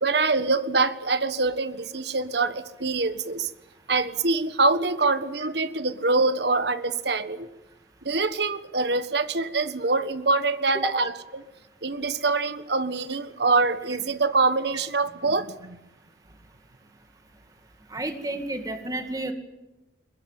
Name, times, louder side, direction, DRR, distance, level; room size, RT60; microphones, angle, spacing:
voice 1, 0.0-3.5 3.9-7.5 8.0-11.4 11.8-15.8, right 3 dB, 70° right, 12 dB, 1.4 m, -25 dB
voice 2, 17.9-19.3, right 1 dB, 20° right, 6 dB, 2.3 m, -30 dB
22.0 x 21.0 x 9.2 m, 1.0 s
head